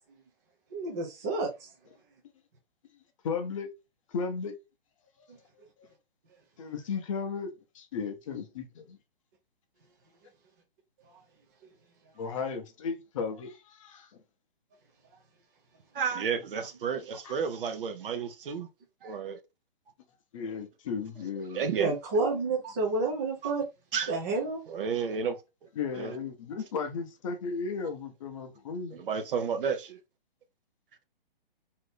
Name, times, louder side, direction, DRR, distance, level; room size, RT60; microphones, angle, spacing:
voice 1, 0.7-1.7 21.8-23.7 24.1-24.6, right 3 dB, 20° right, 0.4 m, -29 dB
voice 2, 3.2-3.7 4.1-4.5 6.6-9.0 12.2-14.1 17.2-17.3 20.3-21.6 25.8-29.0, left 5 dB, 35° left, 0.6 m, -35 dB
voice 3, 15.9-18.7 19.0-19.4 21.5-21.9 23.4-23.5 23.9-24.1 24.7-25.4 26.0-26.1 28.9-30.0, right 6 dB, 65° right, 0.8 m, -31 dB
2.7 x 2.5 x 3.3 m
hypercardioid pair, 150°, 29 cm